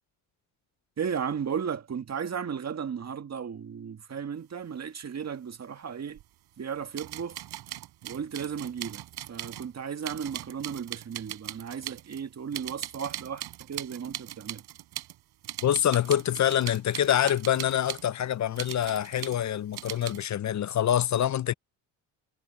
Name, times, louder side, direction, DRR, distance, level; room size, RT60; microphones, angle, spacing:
voice 1, 1.0-6.2 6.6-7.5 8.0-14.6, right 7 dB, 40° right, 1.9 m, -35 dB
sound 1, 6.2-6.3 6.9-9.7 10.0-12.2 12.5-15.2 15.4-18.1 18.6-19.4 19.7-20.3, right 14 dB, 75° right, 5.0 m, -40 dB
voice 2, 15.6-21.5, left 10 dB, 45° left, 0.7 m, -26 dB
supercardioid pair, 70°, 39 cm